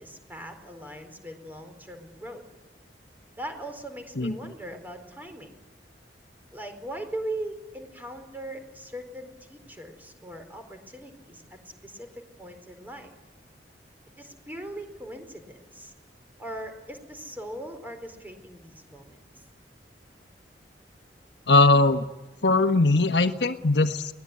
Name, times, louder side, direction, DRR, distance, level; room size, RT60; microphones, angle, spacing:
voice 1, 0.0-2.4 3.4-5.5 6.5-11.4 11.8-13.1 14.2-15.9 16.4-19.2, right 1 dB, 10° right, 6 dB, 4.3 m, -40 dB
voice 2, 21.5-22.0 22.4-24.1, left 2 dB, 80° left, 7 dB, 1.4 m, -20 dB
23.0 x 19.5 x 9.8 m, 1.1 s
head